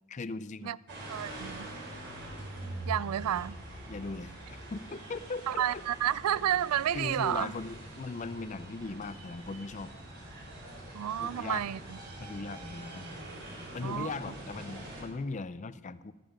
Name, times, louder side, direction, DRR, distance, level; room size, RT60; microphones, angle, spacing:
voice 1, 0.1-0.7 3.9-4.3 4.7-5.8 6.9-9.9 11.2-11.6 12.2-13.2 13.7-16.1, left 3 dB, 35° left, 0.4 m, -39 dB
sound 1, 0.9-15.0, right 1 dB, 50° right, 3.8 m, -44 dB
voice 2, 1.1-1.7 2.9-3.6 5.5-7.5 10.9-12.0 13.8-14.1, right 10 dB, 85° right, 0.4 m, -31 dB
14.0 x 12.5 x 5.0 m
head